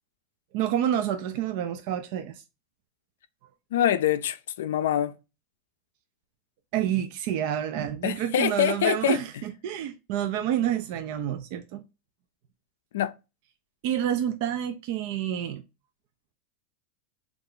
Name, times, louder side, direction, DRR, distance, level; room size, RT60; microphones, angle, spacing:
voice 1, 0.5-2.3 6.7-11.8 13.8-15.6, right 10 dB, 60° right, 0.4 m, -28 dB
voice 2, 3.7-5.1 8.0-9.2 12.9-13.1, left 10 dB, 85° left, 0.4 m, -25 dB
3.2 x 2.4 x 3.6 m
supercardioid pair, 130°, 0 cm